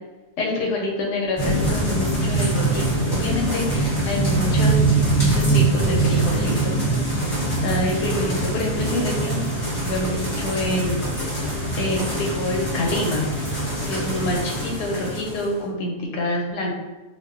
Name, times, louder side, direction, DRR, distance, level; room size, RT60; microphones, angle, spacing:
voice 1, 0.4-4.8 5.2-6.8 7.2-9.4 9.8-11.1 11.3-11.5 11.8-13.3 13.9-16.7, left 1 dB, 80° left, 0 dB, 1.1 m, -26 dB
sound 1, 1.4-15.5, right 2 dB, 25° left, 0.6 m, -23 dB
2.7 x 2.0 x 3.5 m, 1.2 s
omnidirectional pair, 1.8 m